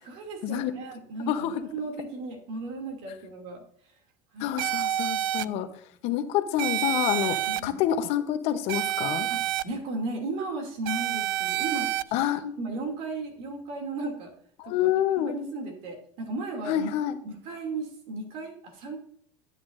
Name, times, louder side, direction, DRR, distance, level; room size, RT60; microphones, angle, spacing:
voice 1, 0.0-3.6 4.3-4.4 5.4-5.7 7.5-7.8 9.3-11.9 12.6-14.3 14.6-14.9 15.3-16.9 17.2-19.0, right 2 dB, 60° right, 2 dB, 2.7 m, -35 dB
voice 2, 1.3-1.7 4.4-5.7 6.0-9.3 12.1-12.6 14.6-15.3 16.7-17.2, left 11 dB, 65° left, 10 dB, 1.0 m, -27 dB
sound 1, 4.6-5.4 6.6-7.6 8.7-9.6 10.8-12.0, right 13 dB, 80° right, 0.4 m, -28 dB
11.5 x 7.9 x 2.6 m, 0.65 s
supercardioid pair, 105°, 11 cm